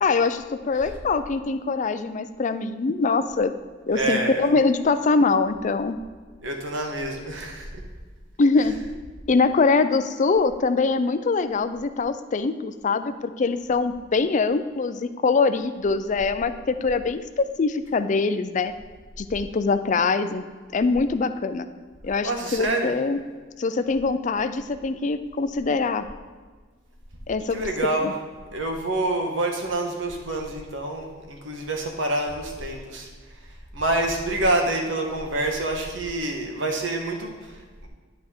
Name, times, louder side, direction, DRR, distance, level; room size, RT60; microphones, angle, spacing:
voice 1, 0.0-3.5 3.9-6.0 8.4-9.0 9.3-18.7 19.2-20.4 20.7-21.7 22.0-23.2 23.6-26.1 27.3-27.6 28.0-28.1, left 4 dB, 40° left, 10 dB, 0.4 m, -23 dB
voice 2, 3.9-4.5 6.4-7.8 22.2-22.9 27.5-28.2 28.5-33.1 33.7-37.9, right 2 dB, 70° right, 2 dB, 1.3 m, -27 dB
11.0 x 4.7 x 4.4 m, 1.5 s
head